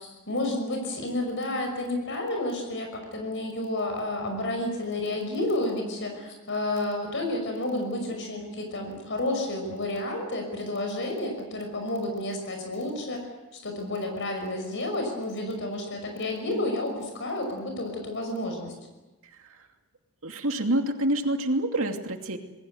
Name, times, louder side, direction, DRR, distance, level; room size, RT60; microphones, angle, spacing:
voice 1, 0.0-13.3 13.5-18.7, left 1 dB, 55° left, 4 dB, 5.9 m, -31 dB
voice 2, 19.2-19.7 20.2-22.4, right 1 dB, 65° right, 4 dB, 2.7 m, -27 dB
28.0 x 21.5 x 8.0 m, 1.1 s
head